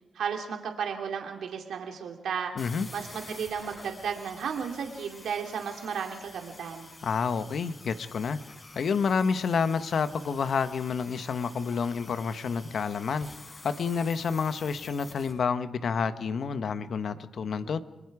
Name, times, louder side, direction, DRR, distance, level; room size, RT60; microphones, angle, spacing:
voice 1, 0.1-2.5 2.9-6.9, right 7 dB, 85° right, 3 dB, 2.4 m, -34 dB
voice 2, 2.5-2.9 7.0-8.4 8.7-13.3 13.6-17.8, left 5 dB, 70° left, 11 dB, 1.1 m, -29 dB
sound 1, 2.6-15.3, left 2 dB, 40° left, 6.3 m, -49 dB
29.5 x 21.0 x 4.8 m, 0.99 s
cardioid pair, 70°, 0 cm